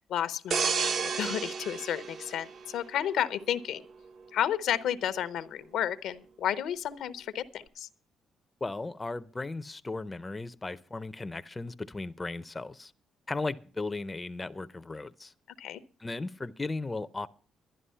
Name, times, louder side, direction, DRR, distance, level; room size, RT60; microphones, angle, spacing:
voice 1, 0.1-3.8 4.3-7.4 7.8-7.9 15.6-15.8, left 10 dB, 80° left, 0.7 m, -32 dB
sound 1, 0.5-3.2 3.6-3.9, right 5 dB, 55° right, 0.9 m, -32 dB
voice 2, 8.6-12.9 13.3-15.3 16.0-17.3, left 3 dB, 20° left, 0.5 m, -36 dB
11.5 x 11.0 x 5.5 m
cardioid pair, 90°, 0 cm